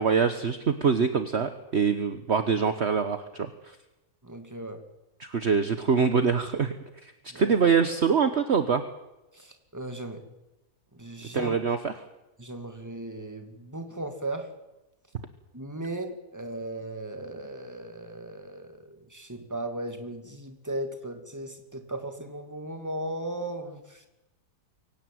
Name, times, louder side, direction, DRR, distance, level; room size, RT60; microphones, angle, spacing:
voice 1, 0.0-3.8 5.2-6.7 7.0-8.8 11.3-11.9, right 6 dB, 45° right, 9 dB, 1.4 m, -24 dB
voice 2, 4.2-4.8 7.3-7.6 9.3-10.2 10.9-11.6 12.4-14.5 15.5-24.1, right 1 dB, 10° right, 6 dB, 2.6 m, -37 dB
24.0 x 17.5 x 9.3 m, 0.99 s
omnidirectional pair, 1.7 m